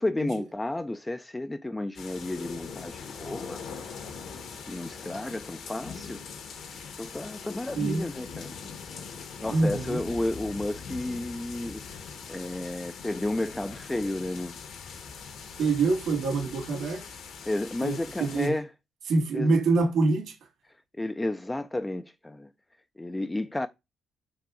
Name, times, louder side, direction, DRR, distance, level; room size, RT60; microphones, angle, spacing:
voice 1, 0.0-3.8 4.7-6.2 7.0-8.6 9.2-11.8 12.3-14.6 17.5-18.7 19.3-19.5 20.9-22.5 23.0-23.7, left 1 dB, 10° left, 0.3 m, -32 dB
sound 1, 2.0-18.5, left 5 dB, 75° left, 1.4 m, -42 dB
voice 2, 7.8-8.1 9.5-10.1 15.6-17.0 17.8-18.5 19.1-20.3, right 3 dB, 70° right, 2.2 m, -25 dB
5.8 x 4.7 x 3.8 m
cardioid pair, 110°, 0 cm